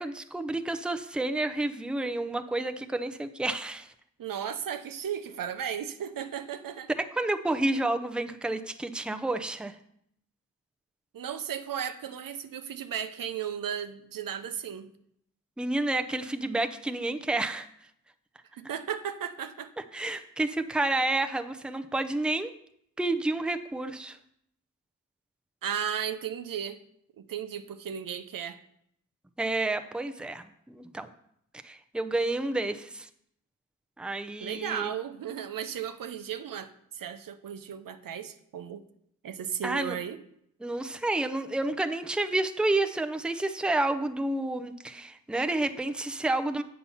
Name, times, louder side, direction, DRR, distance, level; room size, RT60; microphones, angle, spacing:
voice 1, 0.0-3.9 7.0-9.8 15.6-17.7 19.9-22.5 23.0-24.2 29.4-31.1 31.6-33.1 34.0-34.9 39.6-40.0 40.6-46.6, right 2 dB, 5° right, 8 dB, 0.5 m, -30 dB
voice 2, 4.2-6.9 11.1-14.9 18.5-19.7 25.6-26.8 27.2-28.6 34.4-38.8 39.2-40.2, right 8 dB, 80° right, 10 dB, 0.7 m, -35 dB
8.2 x 5.8 x 5.5 m, 0.72 s
wide cardioid pair, 75°, 33 cm